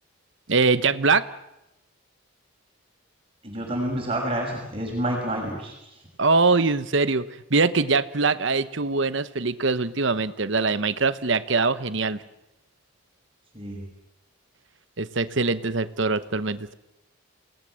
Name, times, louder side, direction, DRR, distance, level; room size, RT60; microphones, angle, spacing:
voice 1, 0.5-1.2 6.2-12.2 15.0-16.7, right 4 dB, 60° right, 13 dB, 1.0 m, -23 dB
voice 2, 3.4-6.0 13.5-13.9, right 1 dB, 25° right, -1 dB, 5.9 m, -29 dB
28.5 x 18.5 x 7.6 m, 0.89 s
head